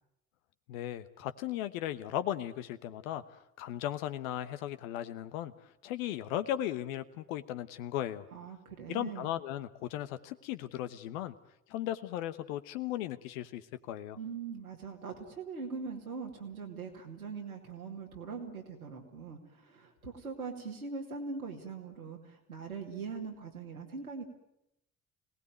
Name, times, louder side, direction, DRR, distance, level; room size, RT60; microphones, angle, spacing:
voice 1, 0.7-5.5 5.8-8.2 8.9-11.3 11.7-14.2, left 12 dB, 70° left, 12 dB, 1.2 m, -37 dB
voice 2, 8.3-9.3 14.2-24.3, right 5 dB, 85° right, 0 dB, 2.8 m, -42 dB
26.0 x 19.0 x 9.5 m, 0.85 s
figure-of-eight pair, 40°, 42 cm